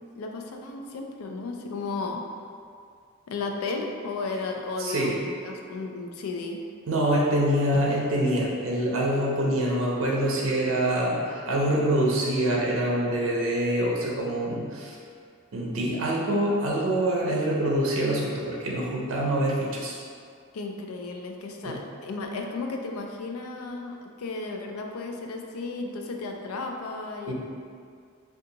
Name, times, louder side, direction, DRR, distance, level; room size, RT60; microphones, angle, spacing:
voice 1, 0.2-2.2 3.3-6.6 20.5-27.3, left 3 dB, 90° left, 2 dB, 0.4 m, -34 dB
voice 2, 4.8-5.1 6.9-14.9 15.5-20.0 21.6-21.8 27.3-27.4, right 1 dB, 65° right, -4 dB, 0.5 m, -25 dB
2.7 x 2.3 x 3.8 m, 2.2 s
head